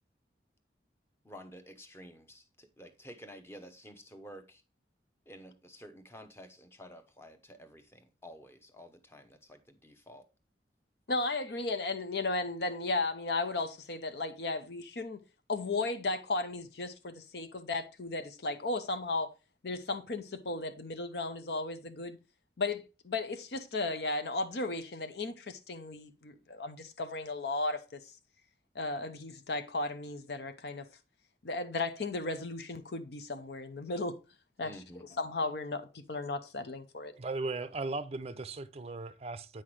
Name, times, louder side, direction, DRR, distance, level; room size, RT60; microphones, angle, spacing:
voice 1, 1.2-4.6 5.3-10.3 34.6-35.1, equal, 15° left, 0.8 m, -51 dB
voice 2, 11.1-15.2 15.5-19.3 19.6-22.2 22.6-28.0 28.7-30.9 31.4-34.2 34.6-34.7 35.2-37.1, left 2 dB, 65° left, 0.7 m, -35 dB
voice 3, 37.2-39.6, right 3 dB, 35° right, 0.5 m, -37 dB
8.7 x 5.7 x 3.2 m
head